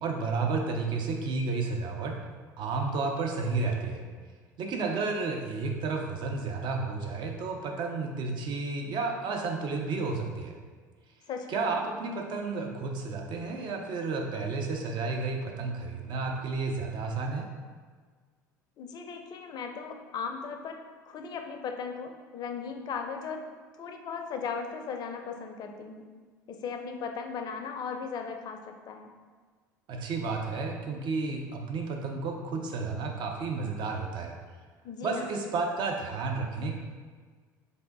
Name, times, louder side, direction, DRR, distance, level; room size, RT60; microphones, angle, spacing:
voice 1, 0.0-2.2 2.6-4.0 4.6-10.5 11.5-17.5 29.9-34.4 35.0-36.7, right 4 dB, 50° right, 2 dB, 0.6 m, -32 dB
voice 2, 11.3-11.8 18.8-20.8 21.1-23.4 23.8-26.1 26.5-29.2 34.8-35.3, left 5 dB, 40° left, 5 dB, 0.5 m, -37 dB
3.4 x 2.5 x 3.9 m, 1.5 s
hypercardioid pair, 70°, 10 cm